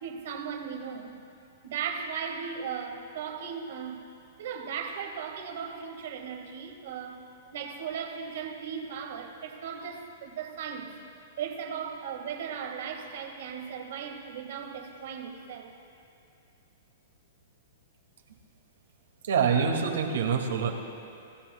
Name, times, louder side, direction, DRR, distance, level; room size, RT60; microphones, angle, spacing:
voice 1, 0.0-1.1 1.6-4.0 4.4-7.3 7.5-10.9 11.4-15.7, right 7 dB, 60° right, 5 dB, 1.6 m, -37 dB
voice 2, 19.2-20.7, right 6 dB, 90° right, 3 dB, 1.9 m, -25 dB
27.0 x 16.0 x 2.2 m, 2.5 s
hypercardioid pair, 165°, 0 cm